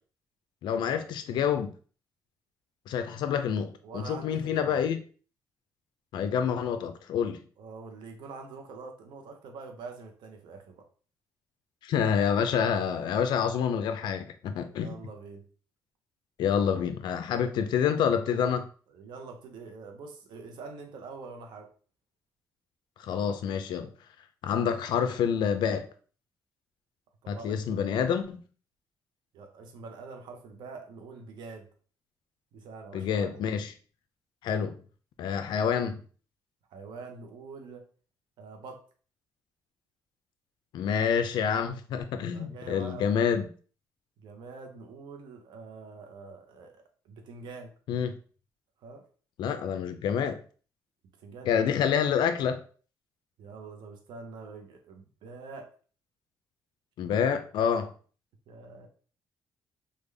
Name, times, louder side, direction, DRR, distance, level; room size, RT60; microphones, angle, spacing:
voice 1, 0.6-1.7 2.9-5.0 6.1-7.4 11.8-15.0 16.4-18.7 23.0-23.9 24.4-25.8 27.3-28.4 32.9-33.7 34.4-34.8 35.2-36.0 40.7-43.5 47.9-48.2 49.4-50.4 51.5-52.6 57.0-57.9, left 7 dB, 80° left, 0.4 m, -27 dB
voice 2, 3.8-4.8 7.6-10.8 14.7-15.4 18.9-21.7 27.2-27.6 29.3-31.7 32.5-33.5 36.7-37.8 38.4-38.8 42.3-43.2 44.2-47.7 48.8-49.0 51.2-51.6 53.4-55.7 58.5-58.9, right 4 dB, 80° right, 0.7 m, -45 dB
3.4 x 2.2 x 3.3 m
cardioid pair, 105°, 8 cm